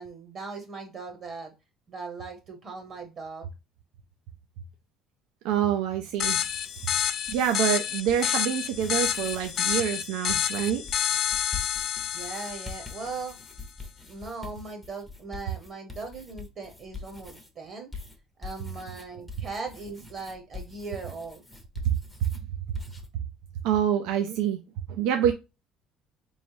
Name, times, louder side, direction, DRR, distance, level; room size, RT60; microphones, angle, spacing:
voice 1, 0.0-1.5 1.9-3.5 12.1-13.4 14.1-17.9 18.4-21.4, right 4 dB, 35° right, 4 dB, 0.9 m, -39 dB
voice 2, 5.4-6.4 7.3-10.8 21.8-22.0 23.6-24.6 24.9-25.3, right 9 dB, 85° right, 5 dB, 0.5 m, -26 dB
sound 1, 6.0-7.5 8.0-8.3 8.7-9.8 10.3-17.5 17.9-22.4 22.7-23.1, left 4 dB, 5° left, 0.7 m, -44 dB
sound 2, 6.2-13.4, left 10 dB, 45° left, 0.4 m, -29 dB
4.2 x 3.1 x 2.7 m, 0.26 s
cardioid pair, 155°, 0 cm